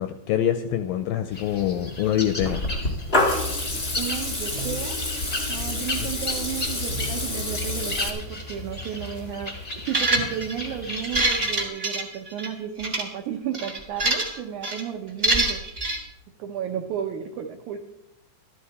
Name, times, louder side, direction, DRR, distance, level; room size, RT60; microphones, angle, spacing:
voice 1, 0.0-2.6 6.0-6.1, left 11 dB, 85° left, 8 dB, 2.1 m, -25 dB
sound 1, 1.3-11.6, left 2 dB, 55° left, 0.4 m, -35 dB
Water tap faucet / Liquid, 2.4-8.1, left 1 dB, 35° left, 1.0 m, -28 dB
voice 2, 4.0-5.0 5.5-15.6 16.4-17.8, right 9 dB, 85° right, 3 dB, 1.7 m, -33 dB
sound 2, 9.9-10.5 11.0-12.5 12.8-13.0 13.5-14.4 14.6-14.8 15.2-16.0, right 2 dB, 50° right, 0.6 m, -24 dB
13.0 x 12.5 x 4.2 m, 0.81 s
omnidirectional pair, 4.8 m